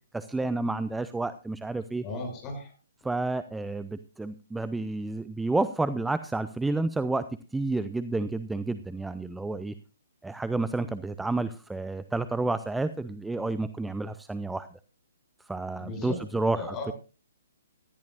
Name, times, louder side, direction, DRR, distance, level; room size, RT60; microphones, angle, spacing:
voice 1, 0.1-2.0 3.0-7.3 7.5-9.7 10.2-14.7 15.5-16.9, right 2 dB, 5° right, 13 dB, 0.5 m, -30 dB
voice 2, 2.0-2.7 15.8-16.2 16.5-16.9, left 2 dB, 25° left, 3 dB, 6.3 m, -36 dB
18.5 x 13.5 x 2.5 m, 0.35 s
figure-of-eight pair, 125°, 0 cm